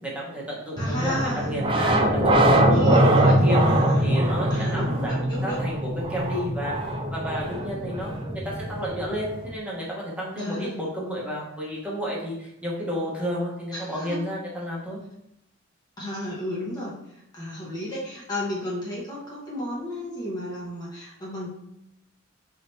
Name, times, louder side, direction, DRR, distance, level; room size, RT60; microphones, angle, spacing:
voice 1, 0.0-3.6 4.0-6.7 7.1-15.0, equal, 5° right, -5 dB, 1.0 m, -32 dB
voice 2, 0.8-1.5 2.7-4.1 4.5-5.6 10.3-10.8 13.7-14.2 16.0-17.0 17.3-21.5, equal, 20° left, -5 dB, 0.8 m, -32 dB
sound 1, 0.8-9.5, right 1 dB, 25° right, 0.4 m, -22 dB
5.4 x 3.6 x 2.7 m, 0.82 s
head